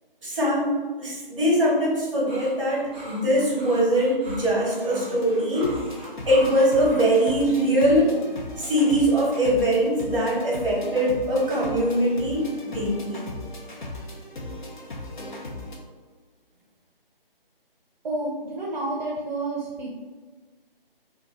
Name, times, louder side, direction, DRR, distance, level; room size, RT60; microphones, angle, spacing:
voice 1, 0.2-0.7 1.0-5.8 6.3-8.1 8.6-13.2, equal, 35° right, -5 dB, 1.1 m, -22 dB
sound 1, 2.3-7.3, equal, 10° right, 0.5 m, -40 dB
sound 2, 4.8-15.8, left 1 dB, 55° left, 0.6 m, -38 dB
voice 2, 18.0-19.9, right 2 dB, 50° right, -4 dB, 0.6 m, -30 dB
2.5 x 2.4 x 3.2 m, 1.4 s
figure-of-eight pair, 155°, 29 cm